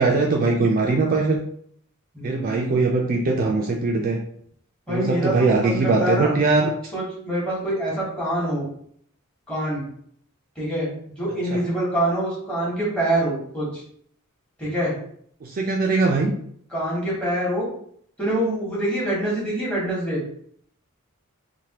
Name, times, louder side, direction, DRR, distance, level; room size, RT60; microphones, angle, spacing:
voice 1, 0.0-1.4 2.2-4.2 4.9-6.7 11.5-11.6 15.4-16.3, right 3 dB, 40° right, 0 dB, 0.3 m, -21 dB
voice 2, 2.1-2.8 4.9-6.4 6.9-8.7 9.5-9.8 10.6-13.8 14.6-14.9 16.7-17.7 18.2-20.2, right 1 dB, 5° left, -6 dB, 1.1 m, -25 dB
3.1 x 2.2 x 2.8 m, 0.64 s
head